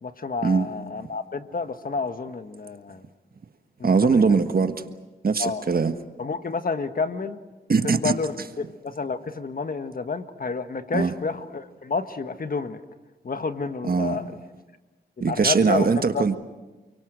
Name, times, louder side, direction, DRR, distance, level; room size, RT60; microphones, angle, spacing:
voice 1, 0.0-3.0 3.8-4.4 5.4-5.6 6.2-7.4 7.8-12.8 13.2-14.3 15.3-15.9 16.1-16.4, left 4 dB, 55° left, 1.5 m, -30 dB
voice 2, 3.8-4.8 5.2-5.9 7.7-8.1 10.9-11.1 13.8-14.2 15.2-16.4, right 5 dB, 55° right, 1.5 m, -21 dB
29.5 x 23.5 x 6.4 m
cardioid pair, 65°, 18 cm